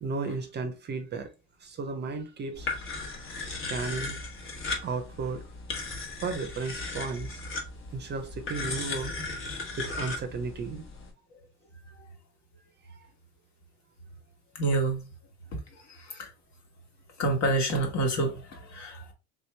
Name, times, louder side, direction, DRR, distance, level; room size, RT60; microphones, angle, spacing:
voice 1, 0.0-1.3 1.6-2.7 3.0-3.1 3.5-4.2 4.8-5.4 6.2-7.3 7.9-9.1 9.8-10.8 12.9-13.1, right 4 dB, 30° right, 0.6 m, -34 dB
sound 1, 2.5-11.1, left 3 dB, 35° left, 1.1 m, -36 dB
voice 2, 14.5-15.1 15.7-16.3 17.2-19.1, right 2 dB, 50° left, 1.4 m, -28 dB
3.5 x 2.9 x 3.2 m
cardioid pair, 130°, 35 cm